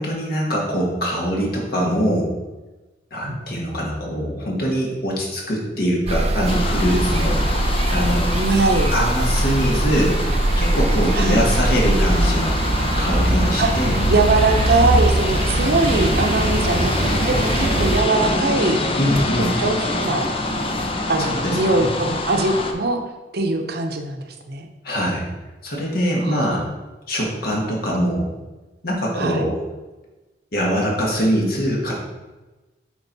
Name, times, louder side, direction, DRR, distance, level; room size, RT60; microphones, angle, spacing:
voice 1, 0.0-2.3 3.1-7.4 7.9-8.3 8.9-10.2 10.5-12.6 13.0-14.0 18.9-19.5 21.2-21.9 24.8-25.2 25.6-26.7 27.1-28.3 28.8-29.6 30.5-31.9, equal, 60° left, -3 dB, 1.7 m, -23 dB
sound 1, 6.1-18.0, right 1 dB, 35° right, 0.6 m, -21 dB
sound 2, 6.5-22.7, left 2 dB, 30° left, 0.7 m, -25 dB
voice 2, 8.3-8.9 11.1-11.5 13.6-13.7 14.1-18.8 19.4-20.3 21.1-23.0 23.3-24.7 26.2-26.7 29.2-29.4, right 2 dB, 65° right, 4 dB, 0.9 m, -22 dB
8.2 x 4.5 x 4.1 m, 1.1 s
head